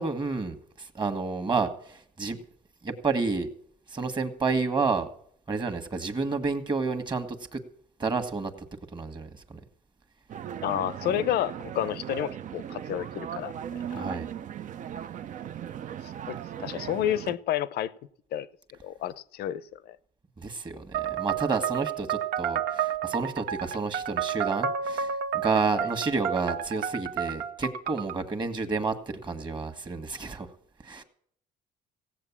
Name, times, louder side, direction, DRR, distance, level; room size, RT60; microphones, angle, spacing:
voice 1, 0.0-2.4 2.8-3.5 3.9-5.1 5.5-7.6 8.0-8.5 8.9-9.6 13.9-14.3 20.4-30.5 30.8-31.0, right 4 dB, 25° right, 1.5 m, -30 dB
sound 1, 10.3-17.4, right 9 dB, 50° right, 0.6 m, -38 dB
voice 2, 10.6-13.5 13.9-14.0 16.0-17.9 18.3-18.5 18.8-20.0, left 11 dB, 70° left, 0.7 m, -30 dB
sound 2, 20.9-28.2, right 8 dB, 75° right, 1.0 m, -31 dB
16.5 x 7.9 x 7.2 m
cardioid pair, 110°, 17 cm